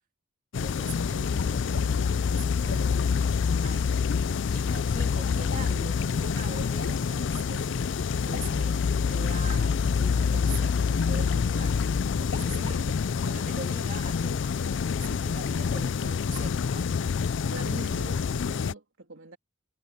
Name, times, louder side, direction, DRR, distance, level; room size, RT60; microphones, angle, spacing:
sound 1, 0.5-18.7, left 6 dB, 65° left, 0.4 m, -27 dB
voice 1, 0.6-3.1 3.6-3.9 4.2-7.9 8.2-11.8 12.2-12.9 13.2-14.6 15.0-16.9, right 4 dB, 45° right, 2.2 m, -43 dB
voice 2, 12.5-13.2 17.5-19.4, right 3 dB, 85° right, 3.1 m, -43 dB
head